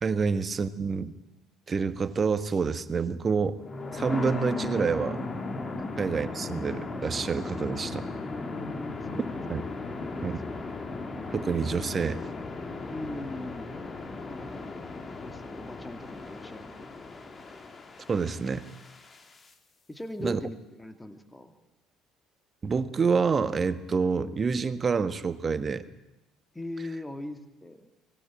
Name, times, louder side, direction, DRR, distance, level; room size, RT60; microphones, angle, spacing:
voice 1, 0.0-1.1 1.7-3.6 3.9-5.2 6.0-8.0 9.5-9.6 10.2-10.4 11.3-12.2 18.1-18.6 20.2-20.4 22.6-25.8, right 5 dB, 35° right, 13 dB, 1.4 m, -27 dB
sound 1, 3.6-19.5, left 3 dB, 30° left, 2.6 m, -37 dB
voice 2, 8.3-9.4 10.0-10.3 12.9-13.8 14.2-14.7 15.2-17.2 19.9-21.5 26.5-27.9, left 1 dB, 10° left, 8 dB, 2.6 m, -40 dB
24.0 x 18.5 x 8.9 m, 0.99 s
figure-of-eight pair, 55°, 0 cm